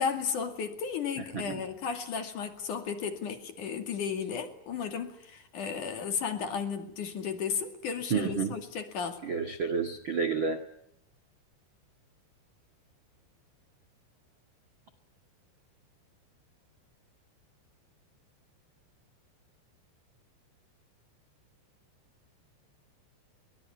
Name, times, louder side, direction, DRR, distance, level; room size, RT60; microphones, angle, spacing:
voice 1, 0.0-9.2, left 6 dB, 50° left, 7 dB, 3.3 m, -34 dB
voice 2, 8.1-8.5 9.2-10.6, right 5 dB, 60° right, 11 dB, 1.2 m, -30 dB
25.0 x 24.0 x 9.5 m, 0.74 s
omnidirectional pair, 5.3 m